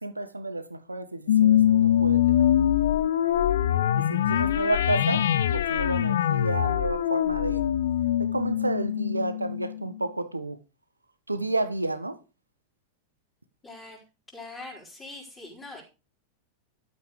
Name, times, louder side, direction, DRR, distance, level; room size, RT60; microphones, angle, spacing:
voice 1, 0.0-2.5 4.0-5.3 5.5-7.6 8.2-10.6 11.3-12.2, right 2 dB, 85° right, 1.3 m, -31 dB
sound 1, 1.3-10.0, left 11 dB, 60° left, 0.7 m, -23 dB
voice 2, 4.3-4.7 13.6-14.0 14.3-15.8, left 2 dB, 20° left, 4.9 m, -43 dB
12.5 x 7.9 x 5.1 m
figure-of-eight pair, 90°, 0 cm